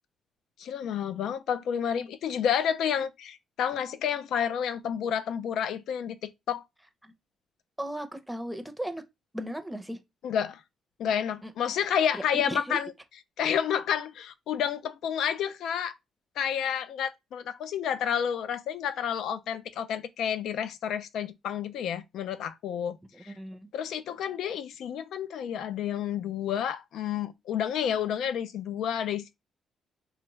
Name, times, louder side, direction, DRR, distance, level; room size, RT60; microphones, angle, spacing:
voice 1, 0.6-6.6 10.2-10.6 11.0-12.9 13.4-15.9 16.4-23.3 23.7-29.3, left 8 dB, 75° left, 0.4 m, -30 dB
voice 2, 7.8-9.0 9.3-10.0 11.4-11.5 12.1-12.8 23.3-23.7, right 1 dB, 5° right, 0.6 m, -36 dB
3.3 x 2.3 x 3.1 m
cardioid pair, 90°, 0 cm